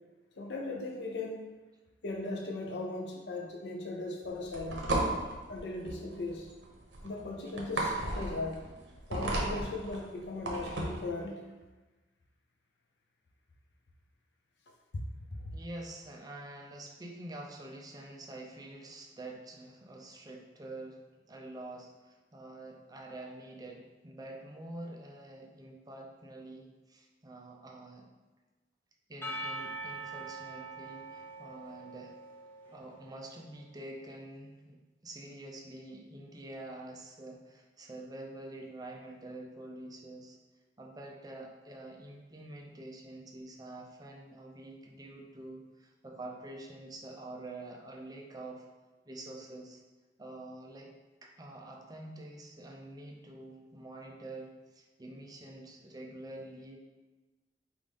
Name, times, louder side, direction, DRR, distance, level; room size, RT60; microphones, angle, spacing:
voice 1, 0.4-1.5 2.0-5.2 5.5-6.5 7.0-8.6 9.1-11.4, left 2 dB, 70° left, 0 dB, 0.5 m, -38 dB
sound 1, 4.2-11.1, right 2 dB, 80° right, 0.8 m, -34 dB
voice 2, 15.5-21.0 21.3-28.1 29.1-32.1 32.7-40.4 40.8-48.6 49.1-49.8 50.2-50.9 51.2-56.8, right 2 dB, 20° right, 1 dB, 0.5 m, -47 dB
Percussion / Church bell, 29.2-33.2, right 2 dB, 10° left, 0.8 m, -43 dB
4.8 x 2.5 x 3.5 m, 1.2 s
head